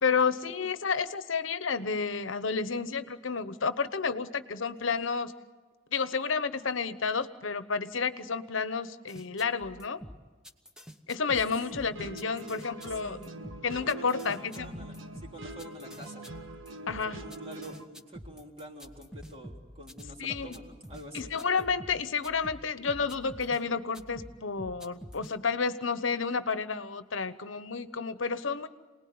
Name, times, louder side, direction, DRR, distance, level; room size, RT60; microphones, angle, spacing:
voice 1, 0.0-5.3 5.9-10.0 11.1-13.2 13.6-14.7 16.9-17.2 20.2-20.6 21.1-28.7, left 5 dB, 80° left, 12 dB, 1.0 m, -30 dB
sound 1, 9.1-23.6 23.9-25.3, equal, 5° right, 1.2 m, -47 dB
sound 2, 11.6-17.9, right 1 dB, 85° right, 1.5 m, -44 dB
voice 2, 12.8-13.3 13.8-16.2 17.0-21.3, right 1 dB, 30° right, 1 dB, 3.3 m, -47 dB
28.0 x 20.0 x 9.5 m, 1.4 s
head